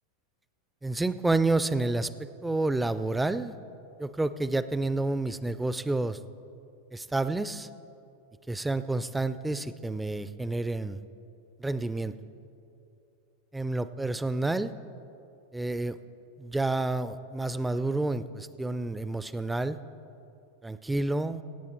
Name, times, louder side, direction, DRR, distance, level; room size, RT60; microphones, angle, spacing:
voice 1, 0.8-3.5 4.0-6.2 6.9-7.7 8.5-11.0 11.6-12.1 13.5-14.7 15.5-16.0 16.4-19.8 20.6-21.4, right 2 dB, 5° right, 14 dB, 0.4 m, -29 dB
16.5 x 8.5 x 4.3 m, 2.7 s
figure-of-eight pair, 90°, 0 cm